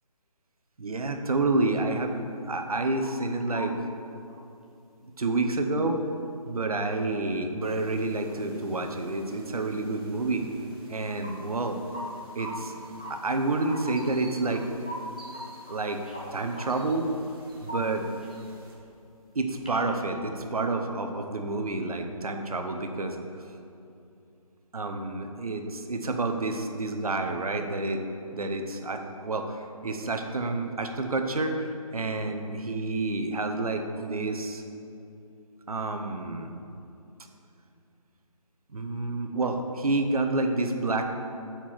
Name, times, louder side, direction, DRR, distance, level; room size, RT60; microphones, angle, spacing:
voice 1, 0.8-2.2 2.5-3.8 5.2-6.1 6.4-10.4 10.9-11.8 12.3-12.7 13.1-14.6 15.7-16.0 16.3-17.1 17.6-18.1 19.3-23.2 24.7-28.0 28.3-34.6 35.7-36.5 38.7-41.0, right 2 dB, 75° right, 5 dB, 0.8 m, -29 dB
sound 1, 2.6-3.3 3.5-3.7 4.3-4.4 4.6-4.7 6.4-6.5 7.3-7.4 7.6-7.8 8.2-8.5 9.2-9.3 9.6-9.7 10.8-11.4 11.9-12.0 12.4-12.5 13.0-13.2 13.6-15.4 15.7-18.9 19.5-19.9, equal, 10° left, 0.3 m, -42 dB
sound 2, 7.6-18.7, right 2 dB, 40° right, 1.0 m, -53 dB
6.9 x 4.5 x 4.5 m, 2.6 s
figure-of-eight pair, 160°, 19 cm